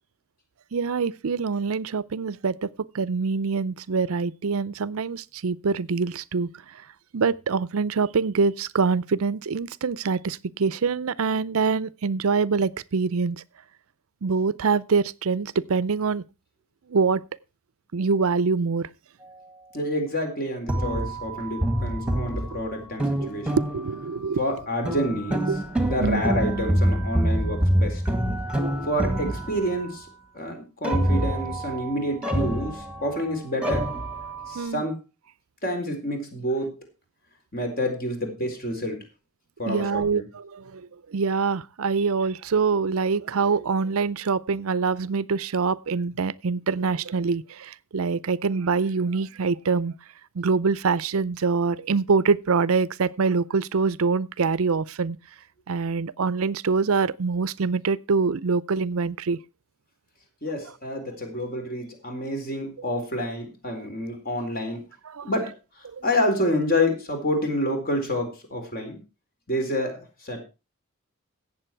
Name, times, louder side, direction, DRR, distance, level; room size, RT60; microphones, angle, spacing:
voice 1, 0.7-2.7 2.9-6.8 7.1-13.4 14.2-16.2 16.9-17.2 17.9-18.9 23.2-24.4 25.5-25.6 26.0-26.2 34.5-34.8 39.7-49.9 50.3-55.2 55.7-59.4 65.1-65.3 65.8-66.0, right 4 dB, 70° right, 0.5 m, -25 dB
voice 2, 19.7-23.5 24.4-25.4 25.9-28.0 28.9-30.1 30.3-33.9 34.5-34.9 35.6-36.7 37.5-39.0 39.6-40.2 60.4-64.9 65.2-65.5 66.0-69.0 69.5-70.4, left 1 dB, 40° left, 4.2 m, -28 dB
sound 1, 20.7-24.1 24.8-29.9 30.8-33.3 33.6-34.7, right 1 dB, 5° right, 1.8 m, -26 dB
16.5 x 7.5 x 4.6 m
head